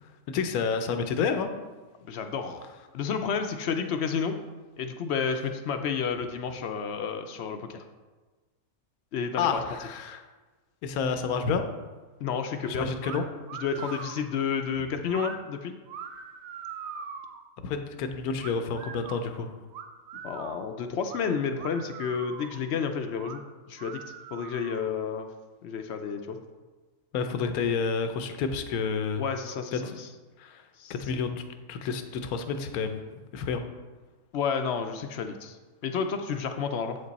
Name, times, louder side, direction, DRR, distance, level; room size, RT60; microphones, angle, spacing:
voice 1, 0.3-1.5 9.4-10.2 10.8-11.6 12.6-13.2 17.6-19.5 27.1-29.2 29.7-29.8 30.4-30.6 30.9-31.4 31.7-33.6, left 5 dB, 85° left, 7 dB, 1.1 m, -29 dB
voice 2, 2.0-2.6 2.9-4.4 4.8-7.8 9.1-9.6 12.2-12.9 13.6-15.8 20.2-23.4 23.7-24.0 24.3-25.3 25.6-26.4 29.2-30.1 30.8-31.2 34.3-35.6 35.8-37.0, left 6 dB, 65° left, 7 dB, 0.7 m, -31 dB
sound 1, 13.0-13.2 13.5-14.2 15.1-15.4 15.9-17.4 18.4-19.2 19.7-20.7 21.1-21.2 21.6-22.6 23.2-23.4 23.8-24.9, right 6 dB, 70° right, 1.0 m, -41 dB
7.8 x 5.3 x 4.0 m, 1.3 s
omnidirectional pair, 1.5 m